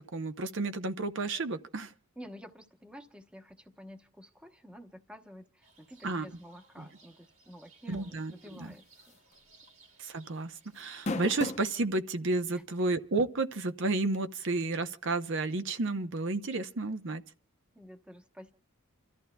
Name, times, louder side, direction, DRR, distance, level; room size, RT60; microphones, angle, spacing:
voice 1, 0.0-1.9 6.0-6.3 7.9-8.7 10.0-17.2, right 3 dB, 55° right, 0.7 m, -32 dB
voice 2, 2.2-9.2 12.5-12.6 17.7-18.5, equal, 5° right, 1.0 m, -50 dB
sound 1, 5.6-11.4, right 4 dB, 75° right, 6.4 m, -62 dB
sound 2, 9.1-9.3 9.7-9.8 10.8-11.7 12.5-12.6 14.1-14.2, left 2 dB, 30° left, 0.8 m, -34 dB
29.5 x 14.0 x 2.3 m
head